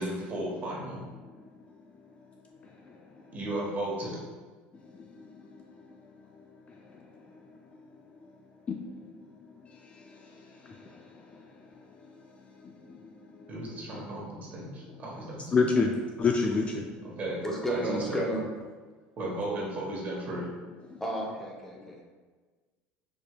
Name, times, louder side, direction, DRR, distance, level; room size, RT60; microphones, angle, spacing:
voice 1, 0.0-1.0 3.3-4.1 13.5-15.5 17.2-17.4 17.7-18.2 19.2-20.5, right 1 dB, 35° right, 1.2 m, -35 dB
voice 2, 1.1-3.4 4.7-14.0 14.9-15.0 15.3-17.2 20.9-21.0 21.7-22.0, left 4 dB, 30° left, 0.3 m, -35 dB
voice 3, 17.4-18.4 21.0-22.0, right 1 dB, 10° left, 0.8 m, -32 dB
4.7 x 2.7 x 2.2 m
supercardioid pair, 110°, 4 cm